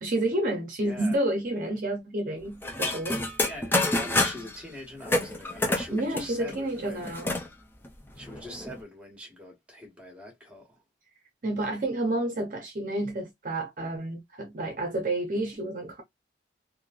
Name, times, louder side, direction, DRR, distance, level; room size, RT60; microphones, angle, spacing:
voice 1, 0.0-3.3 5.9-7.4 11.4-16.0, right 1 dB, 45° right, 0.6 m, -30 dB
voice 2, 0.8-1.2 3.5-7.1 8.1-10.8, left 1 dB, 5° right, 1.2 m, -43 dB
sound 1, 2.6-4.6 5.0-7.5 7.8-7.9 8.2-8.8, left 2 dB, 10° left, 0.4 m, -28 dB
3.0 x 2.6 x 2.4 m
head